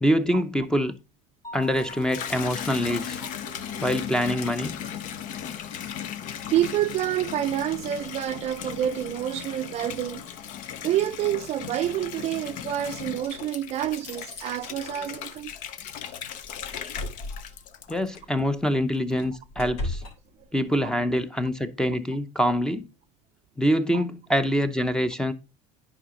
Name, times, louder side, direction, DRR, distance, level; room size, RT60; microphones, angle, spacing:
voice 1, 0.0-0.9 1.5-3.2 3.8-4.7 17.9-20.0 20.5-22.9 23.6-25.3, equal, 5° left, 0.7 m, -25 dB
Mallet percussion, 1.4-3.2, left 2 dB, 25° left, 1.3 m, -44 dB
Water tap faucet / Bathtub (filling or washing), 1.5-18.5 18.9-19.5, left 9 dB, 55° left, 0.8 m, -37 dB
voice 2, 3.2-3.8 5.9-6.1 6.5-10.3 10.8-15.5 20.4-20.5 23.9-24.0, right 12 dB, 45° right, 0.5 m, -28 dB
sound 1, 13.2-14.5 16.4-17.6 18.1-18.3 18.7-20.1, left 1 dB, 85° left, 3.5 m, -36 dB
9.9 x 4.9 x 3.8 m
supercardioid pair, 120°, 16 cm